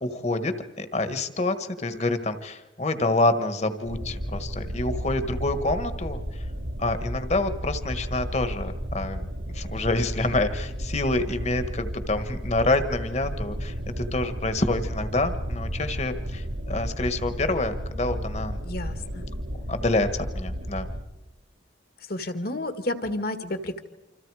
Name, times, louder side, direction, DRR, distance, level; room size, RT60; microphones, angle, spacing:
voice 1, 0.0-6.2 6.8-9.3 9.5-18.6 19.7-20.9, left 2 dB, 35° left, 10 dB, 1.5 m, -27 dB
sound 1, 3.8-21.0, equal, 75° right, 2.1 m, -33 dB
voice 2, 18.6-19.3 22.1-23.8, left 1 dB, 55° left, 9 dB, 1.7 m, -31 dB
28.0 x 26.5 x 4.9 m, 0.96 s
head